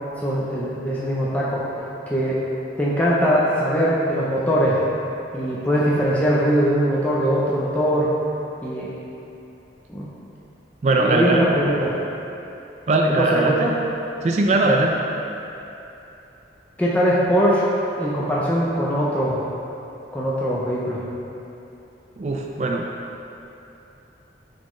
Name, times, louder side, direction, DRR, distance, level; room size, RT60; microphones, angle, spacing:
voice 1, 0.2-1.7 2.1-2.4 2.8-4.8 5.3-8.1 8.6-8.9 9.9-10.1 10.9-12.0 13.2-13.7 14.6-14.8 16.8-17.6 18.0-19.4 20.1-21.0, equal, 10° left, -7 dB, 0.5 m, -21 dB
voice 2, 10.8-11.4 12.9-13.7 14.2-14.9 22.2-22.8, right 2 dB, 40° right, 1 dB, 0.3 m, -20 dB
9.3 x 4.2 x 3.1 m, 2.9 s
head